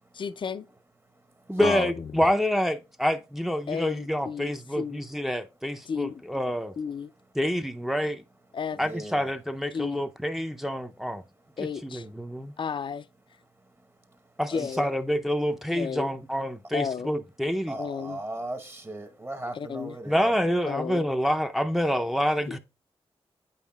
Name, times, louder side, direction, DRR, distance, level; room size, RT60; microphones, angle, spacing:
voice 1, 0.1-0.7 1.6-2.2 3.7-5.0 5.9-6.2 6.8-7.1 8.5-8.8 9.7-10.0 11.6-12.1 12.6-13.1 14.5-14.9 15.7-16.1 16.7-17.1 17.8-18.2 19.5-19.9 20.7-21.1 22.5-22.6, left 6 dB, 50° left, 0.4 m, -33 dB
voice 2, 1.5-6.7 7.4-8.2 8.8-11.2 11.8-12.5 14.4-14.5 14.8-17.7 20.1-22.6, equal, 5° right, 0.5 m, -27 dB
voice 3, 8.7-9.3 14.5-14.9 17.7-20.4, right 1 dB, 20° right, 0.9 m, -37 dB
8.2 x 5.5 x 2.3 m
cardioid pair, 60°, 11 cm